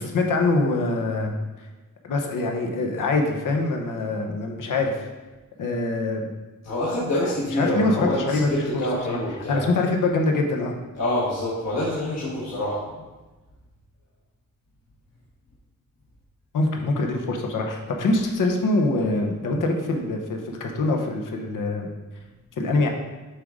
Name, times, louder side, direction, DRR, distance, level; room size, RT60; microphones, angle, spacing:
voice 1, 0.0-1.3 2.0-5.1 5.6-6.2 7.6-8.6 9.1-9.2 9.5-10.7 16.5-21.9 22.6-22.9, left 2 dB, 75° left, 2 dB, 1.0 m, -24 dB
voice 2, 6.6-9.7 10.9-13.0, left 1 dB, 55° left, -7 dB, 1.4 m, -26 dB
7.6 x 3.7 x 4.9 m, 1.2 s
wide cardioid pair, 175°, 32 cm